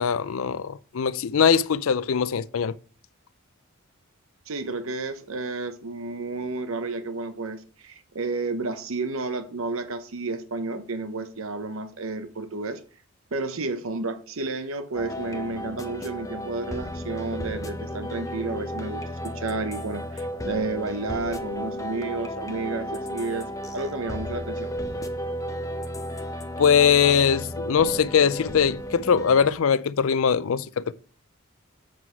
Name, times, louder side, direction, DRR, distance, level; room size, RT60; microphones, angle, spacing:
voice 1, 0.0-2.7 26.6-30.9, left 7 dB, 70° left, 0.4 m, -21 dB
voice 2, 4.5-12.8 13.3-23.5 23.7-24.7, right 3 dB, 70° right, 0.8 m, -31 dB
sound 1, 15.0-29.5, equal, 15° left, 0.6 m, -33 dB
7.6 x 6.1 x 4.6 m
head